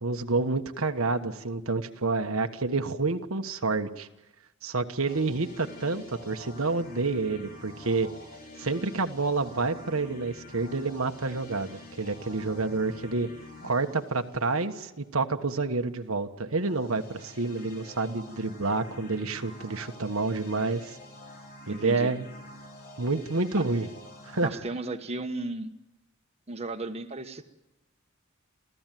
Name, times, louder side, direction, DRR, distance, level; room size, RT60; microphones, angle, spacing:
voice 1, 0.0-4.1 4.6-8.1 8.6-13.3 13.6-21.0 21.7-22.2 23.0-23.9 24.2-24.6, right 3 dB, 85° right, 6 dB, 1.4 m, -29 dB
sound 1, 5.0-15.1 16.5-24.5, left 2 dB, 45° left, 5.7 m, -47 dB
voice 2, 21.7-22.1 24.4-25.7 26.5-27.4, right 2 dB, 30° right, 5 dB, 1.4 m, -34 dB
28.5 x 15.0 x 9.3 m, 0.98 s
head